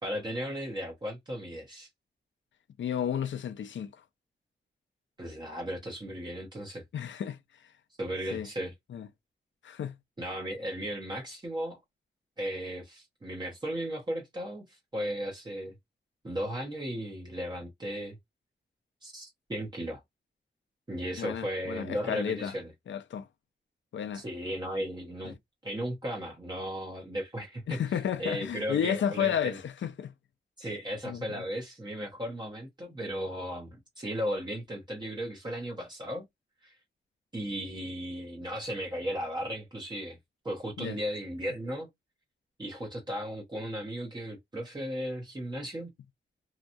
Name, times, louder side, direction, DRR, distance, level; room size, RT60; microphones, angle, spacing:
voice 1, 0.0-1.9 5.2-6.8 8.0-8.7 10.2-11.8 12.4-15.7 16.2-18.2 19.0-20.0 20.9-22.7 24.1-25.3 25.6-27.8 28.2-29.6 30.6-36.2 36.6-36.7 37.3-40.2 40.4-41.9 42.6-45.9, equal, 25° right, 0.9 m, -36 dB
voice 2, 2.8-4.0 6.9-7.4 8.3-8.5 8.9-9.1 9.6-10.0 21.2-22.5 22.9-23.3 23.9-24.2 25.2-25.4 27.7-30.1 31.0-31.4 40.8-41.0, left 8 dB, 80° left, 0.5 m, -32 dB
2.8 x 2.2 x 2.6 m
wide cardioid pair, 125°, 19 cm